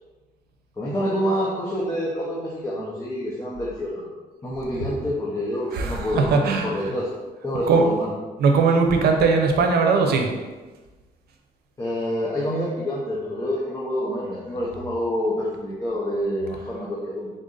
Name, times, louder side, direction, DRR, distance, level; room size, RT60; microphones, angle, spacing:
voice 1, 0.8-4.1 4.4-8.1 11.8-17.3, equal, 20° left, -5 dB, 0.6 m, -27 dB
voice 2, 5.7-6.7 7.7-7.8 8.4-10.3, right 4 dB, 85° right, 3 dB, 0.6 m, -19 dB
4.0 x 2.5 x 3.8 m, 1.2 s
cardioid pair, 135°, 16 cm